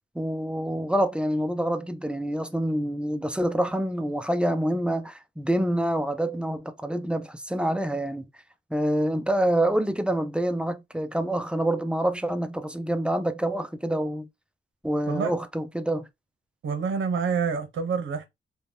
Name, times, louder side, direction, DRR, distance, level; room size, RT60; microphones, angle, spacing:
voice 1, 0.2-8.2 8.7-14.3 14.8-16.1, right 1 dB, 5° right, 0.3 m, -26 dB
voice 2, 16.6-18.3, right 6 dB, 75° right, 0.7 m, -27 dB
2.7 x 2.1 x 3.2 m
wide cardioid pair, 135°, 20 cm